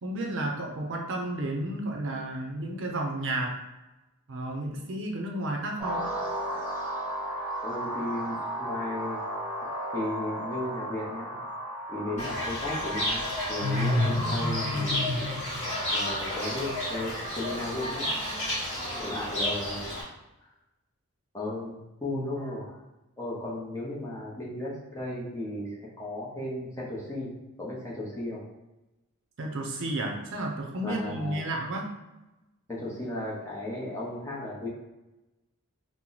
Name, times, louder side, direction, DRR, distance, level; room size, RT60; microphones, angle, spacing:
voice 1, 0.0-3.6 4.3-6.1 29.4-31.9, right 1 dB, 60° right, 1 dB, 0.5 m, -32 dB
sound 1, 5.8-14.2, right 1 dB, 5° right, 1.3 m, -35 dB
voice 2, 7.6-9.2 9.9-11.4 11.9-15.2 15.9-18.1 19.0-19.9 21.3-21.7 22.0-22.8 23.2-25.7 26.0-27.3 27.6-28.4 30.8-31.4 32.7-34.7, left 1 dB, 15° left, -5 dB, 0.7 m, -35 dB
Fowl / Bird, 12.2-20.0, left 1 dB, 35° left, 1.2 m, -30 dB
2.9 x 2.0 x 3.9 m, 1.0 s
head